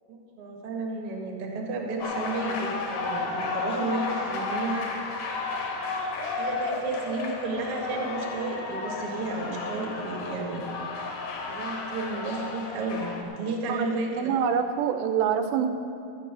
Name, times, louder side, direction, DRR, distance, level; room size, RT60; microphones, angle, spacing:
voice 1, 0.1-4.9 6.3-10.7 11.5-14.3, right 3 dB, 55° right, 0 dB, 1.7 m, -32 dB
sound 1, 2.0-13.2, left 3 dB, 65° left, 2.0 m, -33 dB
voice 2, 13.7-15.7, right 8 dB, 85° right, 8 dB, 2.8 m, -26 dB
13.5 x 9.1 x 6.0 m, 2.6 s
omnidirectional pair, 5.1 m